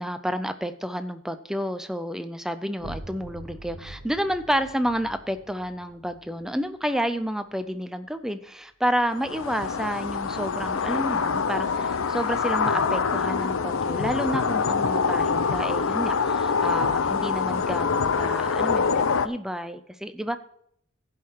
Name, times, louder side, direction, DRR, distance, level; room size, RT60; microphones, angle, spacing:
voice 1, 0.0-18.9 19.2-20.4, equal, ahead, 10 dB, 0.5 m, -30 dB
sound 1, 2.8-8.3, right 1 dB, 75° right, 1.0 m, -45 dB
sound 2, 9.1-19.3, left 5 dB, 80° left, 0.6 m, -25 dB
15.5 x 5.7 x 4.6 m, 0.68 s
head